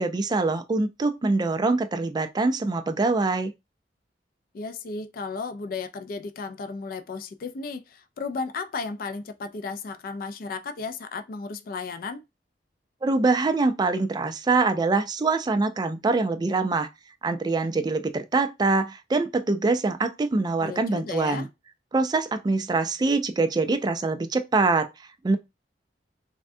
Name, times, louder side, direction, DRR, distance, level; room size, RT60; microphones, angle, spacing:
voice 1, 0.0-3.5 13.0-16.9 17.2-21.5 21.9-24.9 25.2-25.4, right 3 dB, 25° right, 0.3 m, -24 dB
voice 2, 4.5-12.2 20.6-21.5, left 4 dB, 55° left, 0.3 m, -34 dB
3.4 x 2.2 x 2.6 m
head